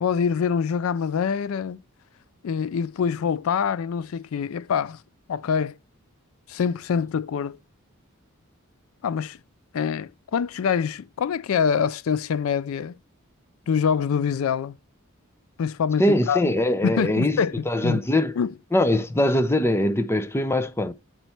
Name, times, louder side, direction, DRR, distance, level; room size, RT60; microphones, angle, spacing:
voice 1, 0.0-1.8 2.4-5.0 5.3-5.8 6.5-7.6 9.0-9.4 9.7-13.0 13.7-14.8 15.6-16.5 16.8-18.0 18.4-18.5, left 6 dB, 85° left, 0.4 m, -25 dB
voice 2, 16.0-18.4 18.7-20.9, left 1 dB, 10° left, 0.5 m, -22 dB
8.0 x 4.5 x 4.3 m
head